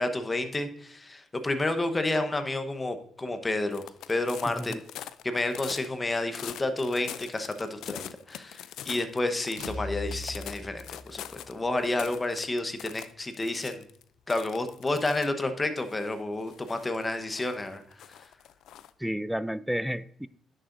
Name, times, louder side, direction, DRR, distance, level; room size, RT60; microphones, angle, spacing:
voice 1, 0.0-4.8 5.2-13.8 14.3-18.3, left 2 dB, 20° left, 1.0 m, -30 dB
sound 1, 3.7-9.8 10.1-11.5 11.8-14.0 14.3-15.3 15.8-18.9, left 11 dB, 80° left, 0.4 m, -43 dB
voice 2, 4.5-4.8 19.0-20.3, equal, 5° right, 0.3 m, -31 dB
sound 2, 9.6-11.5, left 2 dB, 60° right, 1.6 m, -39 dB
10.5 x 6.6 x 2.6 m
cardioid pair, 90°, 0 cm